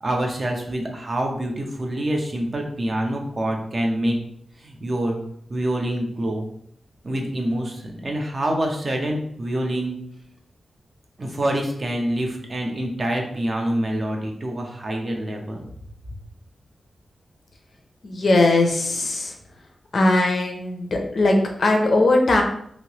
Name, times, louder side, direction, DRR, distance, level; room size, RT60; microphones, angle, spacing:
voice 1, 0.0-4.2 4.6-5.2 5.5-6.4 7.0-10.0 11.2-15.7, right 1 dB, 35° right, 1 dB, 0.6 m, -26 dB
voice 2, 18.0-19.3 19.9-22.4, left 2 dB, 50° left, 3 dB, 0.5 m, -19 dB
3.1 x 2.7 x 2.9 m, 0.68 s
wide cardioid pair, 150°, 0 cm